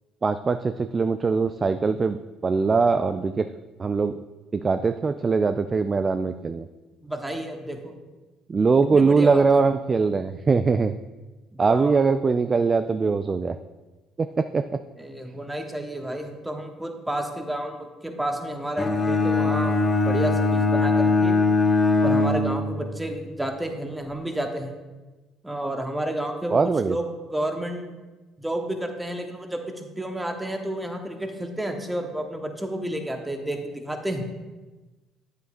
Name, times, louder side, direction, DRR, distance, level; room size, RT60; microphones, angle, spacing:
voice 1, 0.2-2.2 2.4-3.5 3.8-4.2 4.5-6.7 8.5-11.0 11.6-13.6 14.2-14.6 26.5-27.0, right 4 dB, 35° right, 10 dB, 0.3 m, -22 dB
voice 2, 7.0-7.9 8.9-9.4 11.5-12.0 15.0-21.4 22.0-24.7 25.4-26.6 26.9-28.0 28.4-34.3, right 1 dB, 10° right, 4 dB, 1.1 m, -31 dB
Bowed string instrument, 18.8-23.0, left 3 dB, 25° left, 1.2 m, -21 dB
9.1 x 8.1 x 2.5 m, 1.2 s
hypercardioid pair, 60°, 0 cm